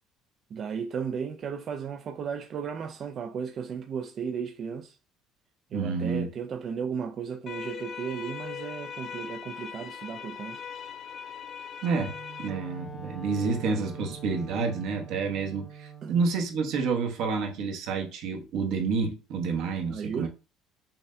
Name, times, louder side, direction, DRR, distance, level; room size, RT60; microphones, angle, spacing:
voice 1, 0.5-5.0 5.7-10.6 16.0-16.2 19.9-20.3, right 6 dB, 40° right, 0.3 m, -35 dB
voice 2, 5.7-6.3 11.8-12.1 12.4-20.3, right 4 dB, 65° right, 1.0 m, -29 dB
sound 1, 7.5-12.5, left 7 dB, 40° left, 0.4 m, -40 dB
Wind instrument woodwind instrument, 12.0-16.1, right 4 dB, ahead, 0.8 m, -44 dB
5.6 x 2.2 x 2.6 m
cardioid pair, 140°, 0 cm